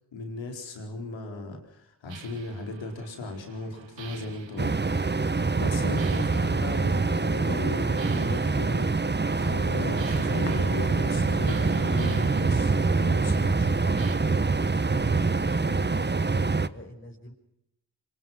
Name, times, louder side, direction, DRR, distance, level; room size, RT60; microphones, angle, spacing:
voice 1, 0.1-4.7 5.6-8.9 9.2-14.0, left 2 dB, 90° left, 4 dB, 4.7 m, -36 dB
sound 1, 2.1-14.2, right 7 dB, 85° right, 1.9 m, -46 dB
sound 2, 4.6-16.7, right 4 dB, 25° right, 1.1 m, -25 dB
sound 3, 9.2-16.5, left 5 dB, 65° left, 2.2 m, -46 dB
voice 2, 15.3-16.1 16.5-17.3, equal, 25° left, -1 dB, 5.6 m, -47 dB
25.5 x 22.0 x 6.0 m, 0.81 s
supercardioid pair, 40°, 44 cm